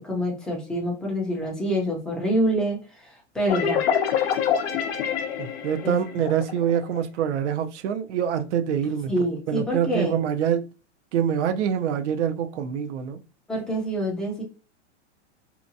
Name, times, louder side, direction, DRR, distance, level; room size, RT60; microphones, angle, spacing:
voice 1, 0.0-2.8 3.3-3.8 5.8-6.0 9.1-10.1 13.5-14.4, equal, ahead, 0.5 m, -26 dB
sound 1, 3.5-7.0, left 8 dB, 60° left, 0.5 m, -26 dB
voice 2, 5.4-9.1 9.5-10.7 11.1-13.2, right 8 dB, 75° right, 0.6 m, -25 dB
2.8 x 2.2 x 2.6 m
supercardioid pair, 150°, 35 cm